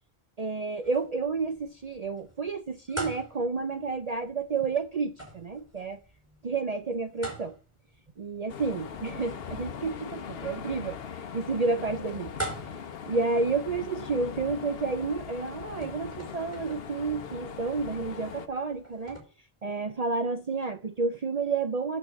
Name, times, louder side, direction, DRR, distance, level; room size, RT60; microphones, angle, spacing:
voice 1, 0.4-6.0 6.4-7.5 8.2-12.3 13.1-19.2 19.6-22.0, right 4 dB, 40° right, 0.7 m, -30 dB
Nespresso Machine Brewing, 0.8-19.2, right 2 dB, 15° right, 4.5 m, -45 dB
sound 1, 8.5-18.5, left 7 dB, 70° left, 1.0 m, -40 dB
9.0 x 5.5 x 7.7 m
omnidirectional pair, 1.0 m